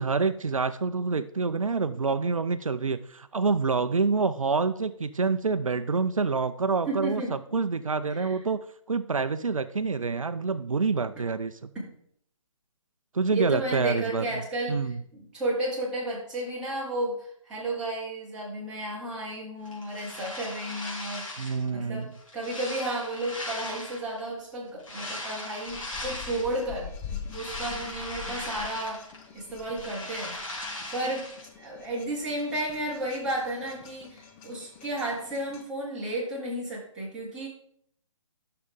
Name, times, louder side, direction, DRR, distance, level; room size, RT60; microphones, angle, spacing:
voice 1, 0.0-7.2 7.5-8.6 8.9-11.7 13.1-14.2 14.7-15.0 21.4-22.1, right 4 dB, 80° right, 12 dB, 0.6 m, -27 dB
voice 2, 6.9-7.3 8.1-8.4 11.7-11.9 13.3-14.8 15.1-22.1 22.3-29.0 29.3-30.3 30.9-31.3 31.6-37.5, right 1 dB, 5° right, -9 dB, 3.1 m, -33 dB
sound 1, 19.6-21.7 22.1-24.2 24.8-26.6 27.0-29.3 29.5-31.5, left 1 dB, 70° left, 3.4 m, -38 dB
sound 2, 25.6-35.6, left 7 dB, 15° left, 0.7 m, -44 dB
12.0 x 6.6 x 3.7 m, 0.67 s
figure-of-eight pair, 140°, 17 cm